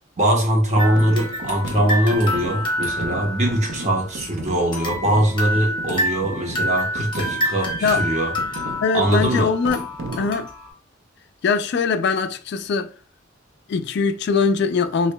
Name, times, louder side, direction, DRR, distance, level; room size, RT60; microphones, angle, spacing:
voice 1, 0.2-8.3 8.6-9.5, right 1 dB, 40° right, 1.0 m, -21 dB
sound 1, 0.8-4.3 4.7-10.7, equal, 25° left, 1.0 m, -28 dB
sound 2, 0.8-10.4, right 2 dB, 85° right, 0.6 m, -35 dB
voice 2, 8.8-9.8 10.2-10.5 11.4-12.9 13.7-15.1, left 5 dB, 60° left, 0.3 m, -21 dB
4.9 x 2.5 x 2.2 m
head